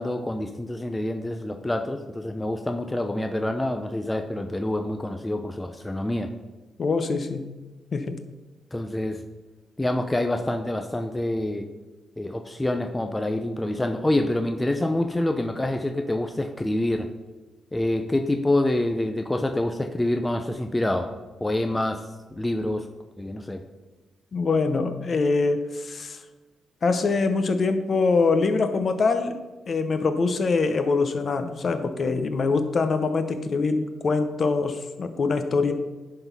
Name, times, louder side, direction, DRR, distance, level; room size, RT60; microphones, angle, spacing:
voice 1, 0.0-6.3 8.7-9.3 9.8-11.7 12.2-17.1 17.7-21.1 21.4-22.0 22.3-22.9 23.2-23.6, left 1 dB, 10° left, 5 dB, 0.5 m, -26 dB
voice 2, 6.8-7.5 7.9-8.2 24.3-26.2 26.8-29.3 29.7-35.7, left 4 dB, 45° left, 9 dB, 0.8 m, -24 dB
10.5 x 4.0 x 5.4 m, 1.2 s
cardioid pair, 120°, 0 cm